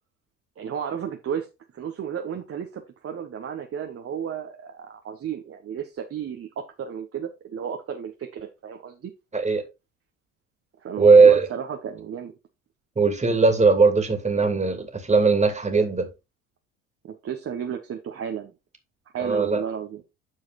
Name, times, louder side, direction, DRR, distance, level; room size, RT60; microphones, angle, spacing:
voice 1, 0.6-1.5 1.7-9.1 10.8-12.3 17.0-18.5 19.1-20.0, right 8 dB, 35° right, 1.4 m, -33 dB
voice 2, 11.0-11.5 13.0-16.1 19.2-19.6, right 4 dB, 15° right, 2.6 m, -18 dB
12.5 x 4.7 x 2.5 m
figure-of-eight pair, 60°, 39 cm